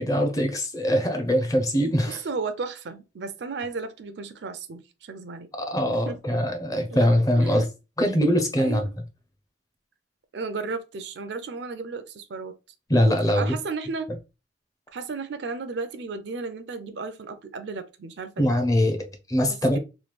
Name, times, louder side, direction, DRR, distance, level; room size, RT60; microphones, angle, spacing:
voice 1, 0.0-2.2 5.6-7.7 8.0-8.9 12.9-13.5 18.4-19.8, equal, 20° left, 0.5 m, -22 dB
voice 2, 2.0-5.5 5.9-6.2 6.9-7.7 8.6-8.9 10.3-12.6 13.2-14.1 14.9-18.5, right 4 dB, 60° right, 0.4 m, -34 dB
3.1 x 2.2 x 3.2 m
head